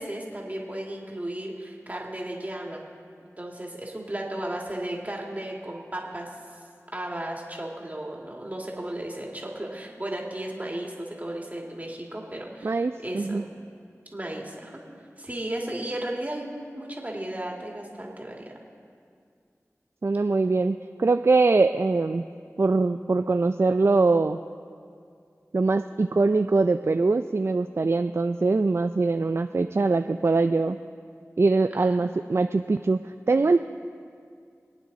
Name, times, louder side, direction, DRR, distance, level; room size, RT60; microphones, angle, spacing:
voice 1, 0.0-2.8 3.4-6.4 6.9-13.5 14.1-14.8 15.2-18.4 31.7-32.1, right 1 dB, 30° right, -1 dB, 2.5 m, -35 dB
voice 2, 12.6-13.4 20.0-22.3 22.6-24.4 25.5-30.8 31.4-33.0 33.3-33.6, right 3 dB, 50° right, 9 dB, 0.4 m, -22 dB
25.5 x 9.0 x 4.2 m, 2.3 s
wide cardioid pair, 45°, 6 cm